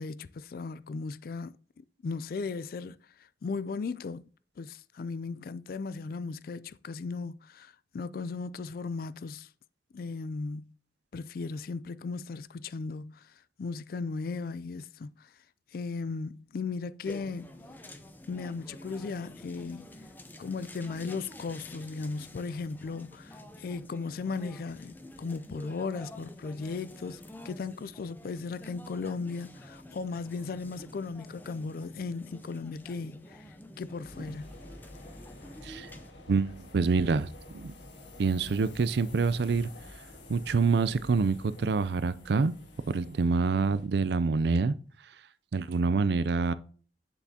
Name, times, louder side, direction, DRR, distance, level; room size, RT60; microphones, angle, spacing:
voice 1, 0.0-3.0 3.4-4.2 4.6-9.5 9.9-10.7 11.1-13.2 13.6-15.3 15.7-17.5 18.3-19.9 20.4-33.4 33.8-34.5, left 4 dB, 55° left, 0.3 m, -36 dB
sound 1, 17.0-36.1, left 1 dB, 10° left, 0.6 m, -49 dB
sound 2, 34.0-43.9, left 2 dB, 85° left, 1.8 m, -49 dB
voice 2, 36.3-37.3 37.5-37.7 38.2-39.7 40.3-42.5 42.9-44.8 45.5-46.5, right 4 dB, 65° right, 0.4 m, -26 dB
7.2 x 7.0 x 2.8 m
head